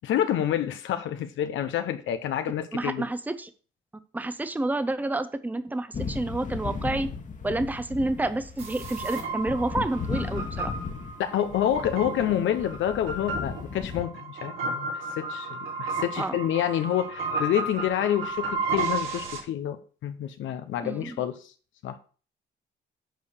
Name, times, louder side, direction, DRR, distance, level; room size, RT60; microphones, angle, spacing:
voice 1, 0.0-3.0 11.2-14.9 15.2-21.4 21.8-22.0, left 10 dB, 80° left, 0.9 m, -28 dB
voice 2, 2.7-3.5 4.1-7.1 7.4-10.7 16.2-16.4 20.8-21.2, right 2 dB, 10° right, 0.7 m, -29 dB
sound 1, 5.9-14.0, left 4 dB, 40° left, 1.5 m, -36 dB
sound 2, 8.6-19.4, right 3 dB, 90° right, 3.3 m, -33 dB
8.1 x 4.8 x 6.7 m
cardioid pair, 90°, 20 cm